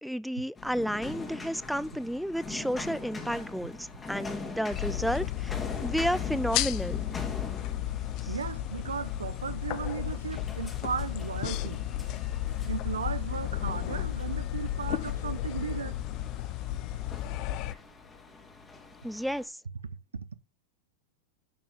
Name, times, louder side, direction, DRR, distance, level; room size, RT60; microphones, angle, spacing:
voice 1, 0.0-7.0 8.2-8.3 19.0-19.6, equal, ahead, 0.4 m, -32 dB
sound 1, 0.6-19.5, left 3 dB, 20° left, 2.0 m, -43 dB
sound 2, 4.7-17.7, left 13 dB, 50° left, 0.6 m, -33 dB
voice 2, 8.3-11.8 12.7-16.0, right 6 dB, 85° right, 0.7 m, -36 dB
10.5 x 4.6 x 3.6 m
hypercardioid pair, 95°, 0 cm